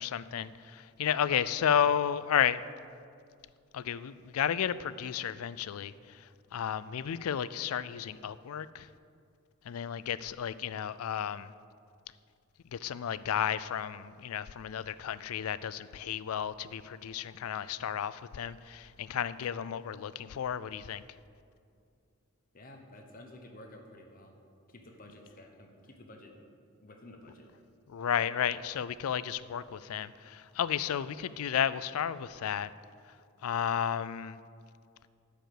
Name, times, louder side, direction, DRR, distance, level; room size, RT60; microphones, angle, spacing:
voice 1, 0.0-2.6 3.7-5.9 6.5-8.9 9.7-11.5 12.7-21.0 27.9-32.7 33.4-34.4, left 9 dB, 75° left, 16 dB, 0.4 m, -32 dB
voice 2, 22.5-24.3 24.7-26.4 26.8-27.5, left 1 dB, 40° left, 2 dB, 1.0 m, -51 dB
11.0 x 5.1 x 7.7 m, 2.3 s
head